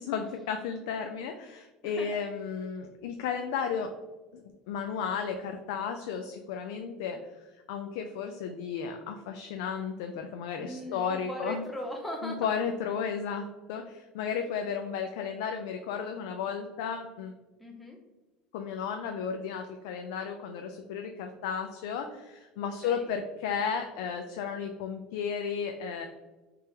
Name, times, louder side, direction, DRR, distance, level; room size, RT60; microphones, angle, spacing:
voice 1, 0.0-3.9 4.7-7.4 7.7-11.6 12.2-17.3 18.5-26.1, left 6 dB, 80° left, 5 dB, 0.3 m, -34 dB
voice 2, 1.8-2.2 10.6-12.5 17.6-18.0 22.8-23.1, left 1 dB, 5° left, 0 dB, 0.4 m, -39 dB
3.4 x 3.3 x 2.8 m, 1.2 s
cardioid pair, 145°, 2 cm